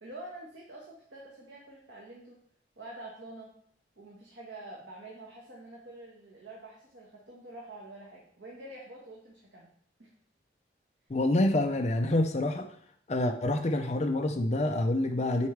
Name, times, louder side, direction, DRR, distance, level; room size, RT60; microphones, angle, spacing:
voice 1, 0.0-2.4 2.8-3.5 4.0-9.7 10.0-10.1, right 2 dB, 75° right, -3 dB, 1.4 m, -47 dB
voice 2, 11.1-12.7 13.1-15.5, left 1 dB, 35° left, 4 dB, 0.5 m, -27 dB
9.5 x 4.6 x 3.4 m, 0.62 s
head